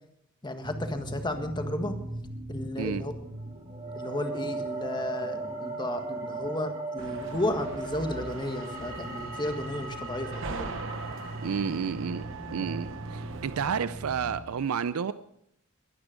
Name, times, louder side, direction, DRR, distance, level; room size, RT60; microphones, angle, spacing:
voice 1, 0.4-2.0 2.5-3.1 3.9-10.8, left 1 dB, 20° left, 6 dB, 1.6 m, -33 dB
sound 1, 0.6-14.4, right 2 dB, 45° right, 2.8 m, -38 dB
sound 2, 7.0-13.7, right 4 dB, 65° right, 1.0 m, -41 dB
voice 2, 11.4-15.1, right 6 dB, 90° right, 14 dB, 0.4 m, -31 dB
22.0 x 9.7 x 5.1 m, 0.78 s
head